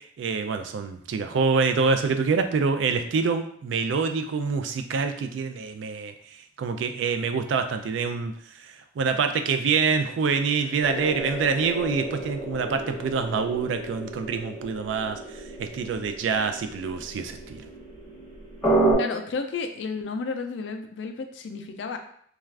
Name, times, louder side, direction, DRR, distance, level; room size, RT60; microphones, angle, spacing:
voice 1, 0.2-6.1 6.6-8.3 9.0-15.2 15.6-17.6, right 5 dB, 85° right, 7 dB, 0.3 m, -26 dB
sound 1, 10.8-18.9, right 2 dB, ahead, 1.3 m, -31 dB
voice 2, 19.0-22.0, left 4 dB, 70° left, 6 dB, 0.4 m, -32 dB
2.4 x 2.3 x 3.2 m, 0.63 s
head